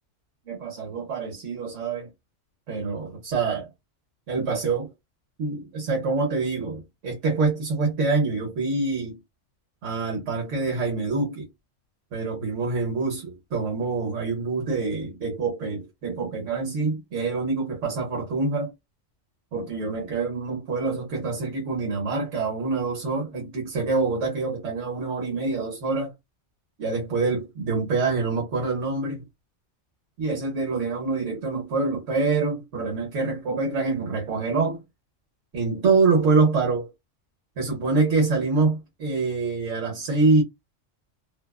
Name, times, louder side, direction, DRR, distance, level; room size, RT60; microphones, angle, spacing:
voice 1, 0.5-2.1 2.7-3.7 4.3-4.9 5.4-9.2 9.8-11.5 12.1-18.7 19.5-26.1 26.8-29.3 30.2-34.8 35.5-36.9 37.6-40.4, right 3 dB, 75° right, 1.2 m, -25 dB
2.7 x 2.3 x 2.3 m
omnidirectional pair, 1.3 m